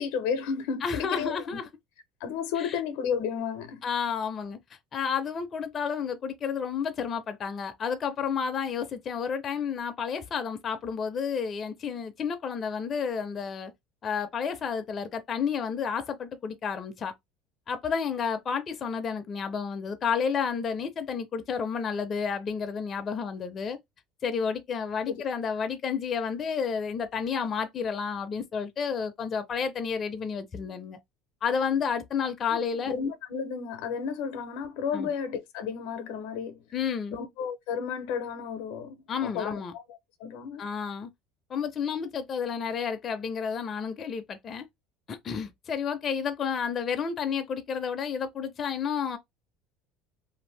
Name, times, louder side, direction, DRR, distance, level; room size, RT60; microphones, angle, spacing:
voice 1, 0.0-1.6 2.2-3.9 25.1-25.2 32.5-36.7 37.1-39.6 40.2-40.6, left 6 dB, 80° left, 0.6 m, -32 dB
voice 2, 0.8-1.7 2.6-2.8 3.8-4.6 4.9-13.7 14.0-17.1 17.7-23.8 24.2-31.0 31.4-32.9 34.9-35.1 36.7-37.2 39.1-39.7 40.6-41.1 41.5-44.7 45.1-49.2, left 6 dB, 35° left, 0.5 m, -31 dB
2.6 x 2.5 x 3.1 m
cardioid pair, 130°, 0 cm